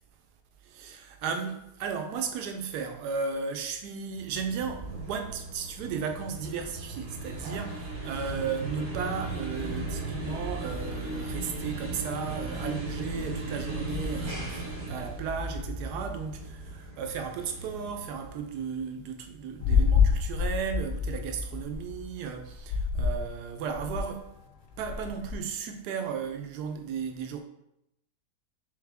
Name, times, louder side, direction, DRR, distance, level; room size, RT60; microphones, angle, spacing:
voice 1, 0.6-24.3 24.8-27.4, right 6 dB, 75° right, 1.1 m, -35 dB
sound 1, 4.1-18.6, right 2 dB, 40° right, 0.8 m, -37 dB
sound 2, 13.7-19.9 20.4-23.6, left 2 dB, 35° left, 0.9 m, -42 dB
sound 3, 19.6-21.8 22.6-23.3 23.6-24.2 24.7-25.4, left 6 dB, 70° left, 0.8 m, -26 dB
3.6 x 3.4 x 3.4 m
omnidirectional pair, 1.8 m